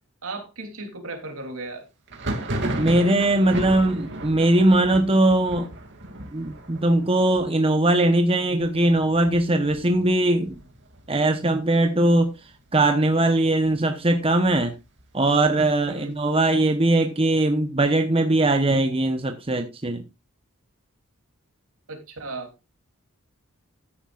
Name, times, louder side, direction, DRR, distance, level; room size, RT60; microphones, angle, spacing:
voice 1, 0.2-1.9 15.9-16.1 21.9-22.5, right 3 dB, 75° right, 3.2 m, -35 dB
Thunder, 2.1-11.6 11.9-12.5 12.8-13.8 14.2-15.9, right 1 dB, 55° right, 2.5 m, -35 dB
voice 2, 2.7-5.7 6.3-10.6 11.1-12.3 12.7-14.7 15.1-20.0, right 1 dB, 25° right, 1.0 m, -20 dB
13.5 x 9.9 x 2.5 m
head